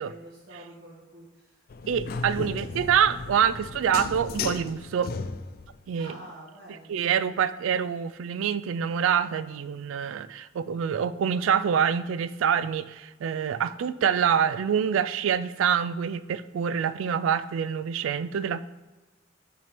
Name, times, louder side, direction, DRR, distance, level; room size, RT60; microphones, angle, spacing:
voice 1, 0.0-1.5 2.4-2.5 3.1-3.3 6.0-7.1, right 1 dB, 55° right, -8 dB, 1.7 m, -47 dB
sound 1, 1.7-5.8, left 4 dB, 45° left, 0.3 m, -35 dB
voice 2, 1.9-5.1 5.9-6.2 6.7-18.6, right 8 dB, 80° right, 16 dB, 0.3 m, -26 dB
5.9 x 4.5 x 5.9 m, 1.2 s
head